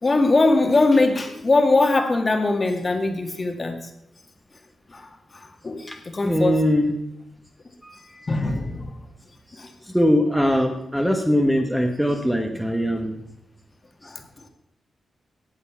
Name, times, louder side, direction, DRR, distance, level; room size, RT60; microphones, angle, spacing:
voice 1, 0.0-3.8 4.9-6.6 8.1-9.0 9.6-9.7 14.0-14.2, left 2 dB, 30° left, 5 dB, 1.8 m, -21 dB
voice 2, 6.2-6.9 7.8-8.0 9.9-13.2, equal, ahead, 3 dB, 1.1 m, -21 dB
17.5 x 7.0 x 5.7 m, 0.80 s
wide cardioid pair, 115°, 0 cm